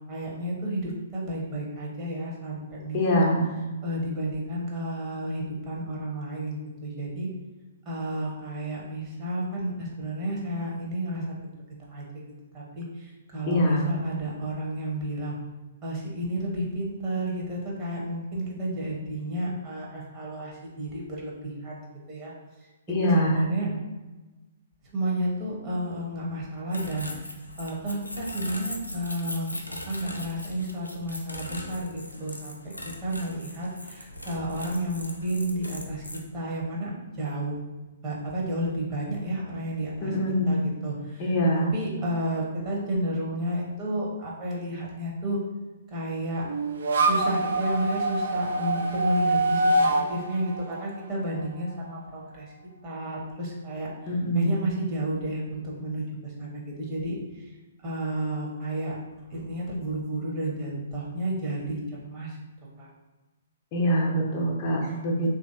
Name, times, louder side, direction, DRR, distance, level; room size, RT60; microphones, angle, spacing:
voice 1, 0.1-3.3 3.8-7.3 7.9-12.2 12.5-15.4 15.8-22.3 22.6-23.7 24.9-27.3 27.6-29.6 29.9-32.7 33.0-36.0 36.3-37.7 38.0-40.1 40.5-45.4 45.9-46.4 47.0-52.5 52.8-53.9 54.3-57.6 57.8-59.0 59.3-62.4 62.8-62.9 64.8-64.9, right 1 dB, 25° right, -4 dB, 0.9 m, -32 dB
voice 2, 2.9-3.5 13.5-13.8 22.9-23.4 40.0-40.6 41.2-41.7 54.1-54.6 63.7-65.3, equal, 35° left, -1 dB, 0.6 m, -24 dB
sound 1, 26.7-36.2, left 1 dB, 90° left, 0.4 m, -40 dB
sound 2, 46.5-51.7, right 2 dB, 60° right, 0.3 m, -25 dB
3.2 x 2.6 x 2.5 m, 1.1 s
figure-of-eight pair, 120°, 0 cm